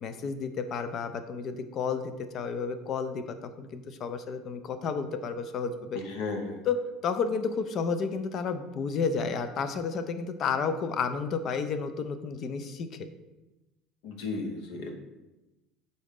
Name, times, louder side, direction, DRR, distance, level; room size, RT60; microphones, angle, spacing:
voice 1, 0.0-6.0 6.7-12.9, left 5 dB, 40° left, 9 dB, 0.3 m, -31 dB
voice 2, 5.9-6.6 14.0-14.9, left 3 dB, 70° left, 4 dB, 0.7 m, -34 dB
3.9 x 3.7 x 3.6 m, 1.0 s
cardioid pair, 135°, 0 cm